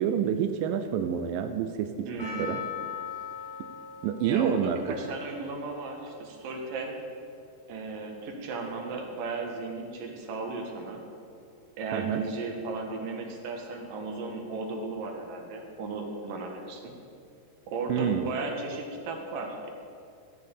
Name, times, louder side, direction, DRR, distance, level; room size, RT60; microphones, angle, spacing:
voice 1, 0.0-2.6 4.0-4.8 11.9-12.2 17.9-18.3, right 8 dB, 90° right, 8 dB, 1.9 m, -28 dB
voice 2, 2.1-2.6 4.2-7.0 7.7-11.0 11.8-16.9 17.7-19.7, right 3 dB, 60° right, 2 dB, 3.0 m, -35 dB
Percussion, 2.2-7.1, left 6 dB, 25° left, 3.3 m, -41 dB
15.0 x 7.2 x 8.4 m, 2.4 s
omnidirectional pair, 4.8 m